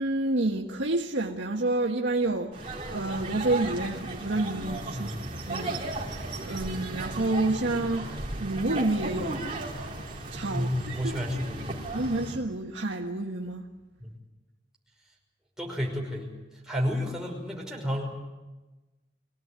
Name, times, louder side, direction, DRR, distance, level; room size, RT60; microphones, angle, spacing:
voice 1, 0.0-5.1 5.5-9.5 10.3-11.2 11.9-13.7, right 2 dB, 85° right, 1.5 m, -29 dB
sound 1, 2.5-12.4, right 2 dB, 30° right, 3.7 m, -35 dB
voice 2, 5.0-5.3 10.5-11.8 14.0-14.1 15.6-18.1, equal, 5° right, 5.6 m, -31 dB
24.0 x 17.5 x 9.5 m
head